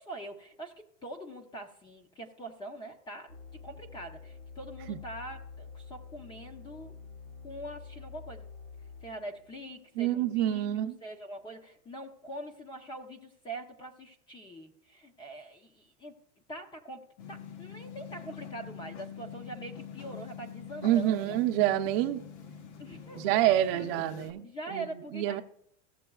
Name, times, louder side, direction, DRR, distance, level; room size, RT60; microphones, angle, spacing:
voice 1, 0.0-6.9 7.4-8.5 9.0-16.2 16.5-17.0 17.3-21.4 22.8-24.1 24.4-25.4, right 1 dB, 10° left, 5 dB, 0.7 m, -44 dB
sound 1, 3.3-10.8, left 5 dB, 80° left, 3.8 m, -48 dB
voice 2, 10.0-11.0 20.8-22.2 23.1-25.4, right 13 dB, 50° right, 6 dB, 0.8 m, -27 dB
sound 2, 17.2-24.3, left 8 dB, 60° left, 1.2 m, -45 dB
15.5 x 7.5 x 2.3 m, 0.72 s
supercardioid pair, 165°, 38 cm